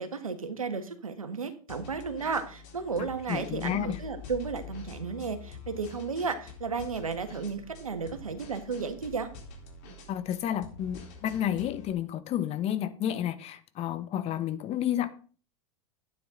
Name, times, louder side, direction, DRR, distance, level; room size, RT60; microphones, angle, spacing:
voice 1, 0.0-9.3, right 5 dB, 90° right, 1.7 m, -33 dB
sound 1, 1.7-11.9, left 4 dB, 55° left, 3.8 m, -46 dB
voice 2, 3.3-4.0 10.1-15.1, left 11 dB, 35° left, 1.2 m, -31 dB
11.5 x 9.4 x 3.9 m
hypercardioid pair, 95°, 17 cm